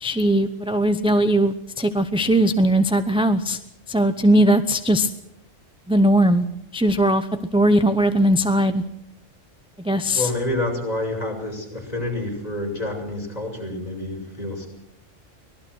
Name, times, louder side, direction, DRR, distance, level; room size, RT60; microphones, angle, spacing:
voice 1, 0.0-3.6 3.9-5.1 5.9-6.5 6.7-8.8 9.8-10.3, right 1 dB, 5° right, 9 dB, 0.7 m, -19 dB
voice 2, 10.1-14.7, left 1 dB, 30° left, 0 dB, 6.5 m, -28 dB
24.5 x 19.0 x 6.3 m, 0.77 s
omnidirectional pair, 1.3 m